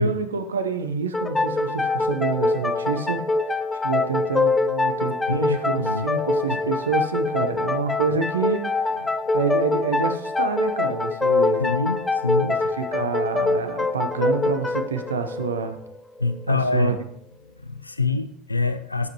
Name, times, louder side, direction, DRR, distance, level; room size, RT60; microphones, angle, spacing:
voice 1, 0.0-9.0 9.3-11.6 12.5-15.8 16.5-16.9, right 5 dB, 75° right, 8 dB, 0.8 m, -27 dB
sound 1, 1.1-16.5, left 3 dB, 10° left, 0.6 m, -24 dB
voice 2, 5.3-6.1 7.6-7.7 11.6-12.6 16.2-17.0 17.6-19.1, left 3 dB, 85° left, 11 dB, 0.4 m, -25 dB
10.5 x 7.4 x 3.0 m, 0.70 s
figure-of-eight pair, 75°, 0 cm